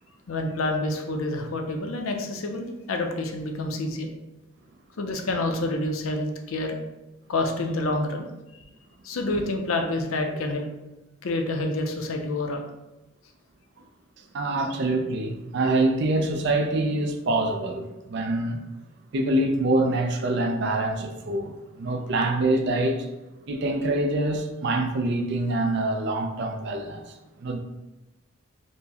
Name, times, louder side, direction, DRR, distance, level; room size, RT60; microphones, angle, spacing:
voice 1, 0.3-4.1 5.0-6.8 7.3-8.3 9.0-10.7 11.2-12.6, left 2 dB, 80° left, 0.5 m, -28 dB
voice 2, 14.3-18.6 19.1-23.1 23.5-27.6, right 2 dB, 55° right, 0.4 m, -25 dB
4.4 x 2.1 x 2.8 m
head